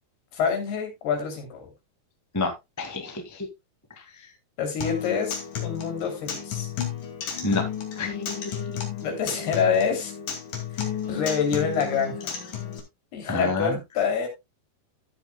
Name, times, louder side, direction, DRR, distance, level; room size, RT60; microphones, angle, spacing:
voice 1, 0.3-1.7 4.6-6.7 9.0-10.1 10.7-12.3 13.1-14.3, left 6 dB, 85° left, 4 dB, 5.0 m, -27 dB
voice 2, 2.3-3.5 7.4-7.6 8.0-8.2 13.3-13.8, left 3 dB, 15° left, 4 dB, 0.6 m, -28 dB
Acoustic guitar, 4.8-12.8, left 8 dB, 60° left, 3.7 m, -32 dB
13.0 x 8.9 x 2.2 m, 0.21 s
omnidirectional pair, 4.5 m